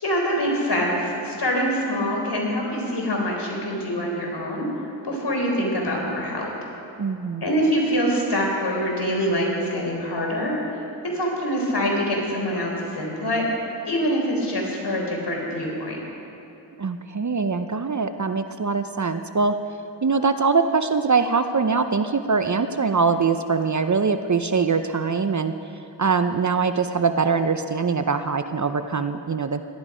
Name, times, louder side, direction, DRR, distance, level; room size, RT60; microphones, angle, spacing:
voice 1, 0.0-4.7 5.0-6.5 7.4-13.5 13.8-16.0, equal, 60° left, -1 dB, 4.1 m, -25 dB
voice 2, 7.0-7.4 16.8-19.5 20.0-25.5 26.0-29.6, right 5 dB, 40° right, 9 dB, 0.7 m, -23 dB
17.5 x 12.0 x 5.1 m, 2.8 s
cardioid pair, 50°, 47 cm